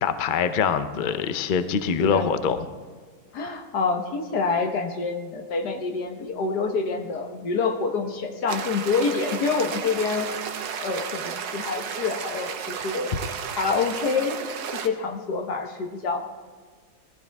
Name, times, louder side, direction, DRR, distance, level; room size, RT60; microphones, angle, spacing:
voice 1, 0.0-2.6, left 7 dB, 55° left, 10 dB, 0.5 m, -24 dB
voice 2, 3.3-10.3 10.8-13.1 13.6-14.4 14.7-16.2, left 4 dB, 85° left, 4 dB, 1.8 m, -27 dB
sound 1, 8.5-14.9, right 7 dB, 80° right, 1.4 m, -33 dB
18.5 x 14.0 x 3.5 m, 1.5 s
omnidirectional pair, 1.7 m